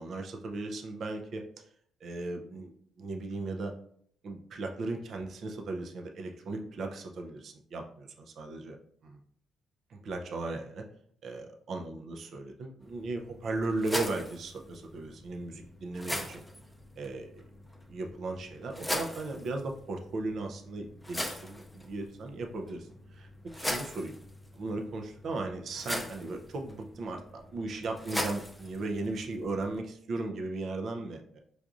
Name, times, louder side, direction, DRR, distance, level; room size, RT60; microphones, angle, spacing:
voice 1, 0.0-1.4 2.0-2.7 3.0-3.7 4.2-8.8 9.0-9.2 9.9-10.8 11.2-16.4 17.0-17.4 17.9-23.3 23.5-24.2 24.5-31.4, right 2 dB, 60° right, 3 dB, 0.5 m, -37 dB
sound 1, 12.8-29.8, left 1 dB, 5° left, 0.5 m, -41 dB
4.6 x 2.5 x 2.4 m, 0.62 s
cardioid pair, 90°, 0 cm